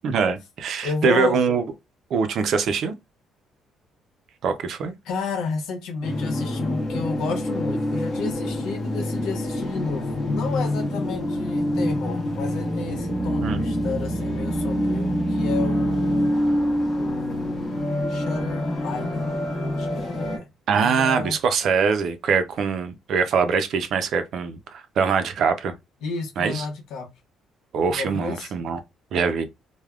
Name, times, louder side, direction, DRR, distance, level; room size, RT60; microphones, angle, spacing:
voice 1, 0.0-1.6 2.1-3.0 4.4-4.9 13.4-13.6 20.7-25.7 26.4-26.7 27.7-28.8 29.1-29.4, right 5 dB, 55° right, 0.5 m, -23 dB
voice 2, 0.8-1.4 5.0-16.3 17.0-19.3 19.8-20.5 20.7-21.4 26.0-27.1 27.9-28.5, left 4 dB, 85° left, 0.9 m, -32 dB
sound 1, 6.0-20.4, left 1 dB, 30° left, 0.8 m, -26 dB
3.4 x 2.2 x 2.3 m
cardioid pair, 150°, 0 cm